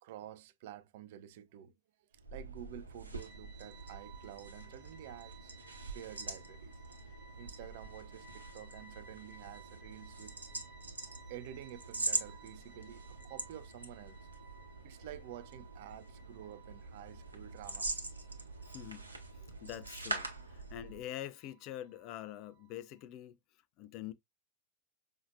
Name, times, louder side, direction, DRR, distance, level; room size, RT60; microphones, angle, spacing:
voice 1, 0.0-1.8 2.3-5.5 5.8-6.8 7.4-10.4 11.0-14.2 14.8-17.9 18.6-18.7 20.3-20.5, right 11 dB, 50° right, 0.4 m, -50 dB
sound 1, 2.2-21.1, right 2 dB, 80° right, 0.9 m, -44 dB
sound 2, 3.2-23.0, right 4 dB, 20° right, 1.1 m, -60 dB
voice 2, 18.7-19.0 19.6-23.4 23.8-24.1, left 12 dB, 40° left, 0.4 m, -45 dB
5.6 x 2.7 x 2.4 m
figure-of-eight pair, 90°, 0 cm